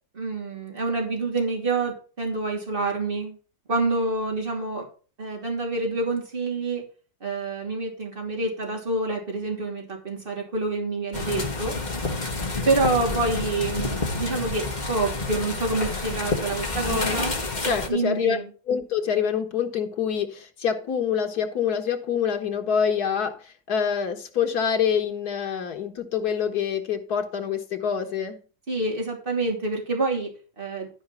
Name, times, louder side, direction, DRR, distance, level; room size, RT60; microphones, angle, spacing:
voice 1, 0.1-3.4 3.7-4.9 5.2-6.8 7.2-11.7 12.7-17.3 17.9-18.5 28.7-30.9, right 2 dB, 35° right, 3.1 m, -27 dB
sound 1, 11.1-17.9, left 3 dB, 30° left, 1.7 m, -29 dB
voice 2, 16.9-17.2 17.6-18.4 18.7-28.4, left 7 dB, 90° left, 1.9 m, -26 dB
12.0 x 4.9 x 5.7 m
omnidirectional pair, 1.6 m